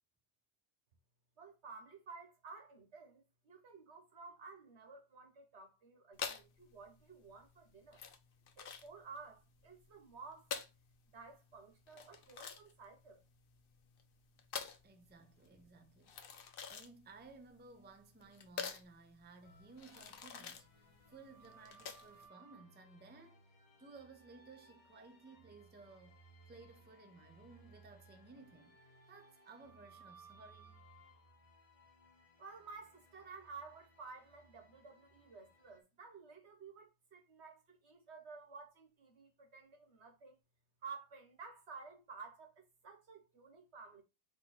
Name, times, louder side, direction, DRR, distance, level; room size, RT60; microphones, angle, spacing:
voice 1, 1.4-8.0 8.6-10.5 11.1-13.2 32.4-40.4 40.8-44.0, right 4 dB, 80° right, 1.6 m, -53 dB
sound 1, 6.1-22.3, left 6 dB, 60° left, 0.8 m, -48 dB
voice 2, 14.8-23.4 23.8-28.8 29.1-30.8, right 3 dB, 15° right, 0.5 m, -58 dB
sound 2, 19.4-35.8, right 2 dB, 35° left, 0.9 m, -63 dB
4.3 x 2.9 x 4.2 m
omnidirectional pair, 1.1 m